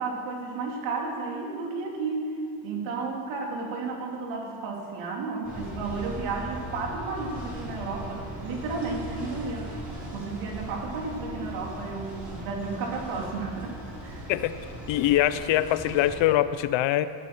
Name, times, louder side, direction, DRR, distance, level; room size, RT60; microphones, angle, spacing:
voice 1, 0.0-2.3 2.6-9.8 10.1-14.3, right 4 dB, 80° right, -1 dB, 3.1 m, -33 dB
sound 1, 5.4-16.2, right 1 dB, 20° right, 4.5 m, -39 dB
voice 2, 14.9-17.1, left 13 dB, 70° left, 14 dB, 0.7 m, -23 dB
18.0 x 11.0 x 4.6 m, 2.1 s
cardioid pair, 150°, 46 cm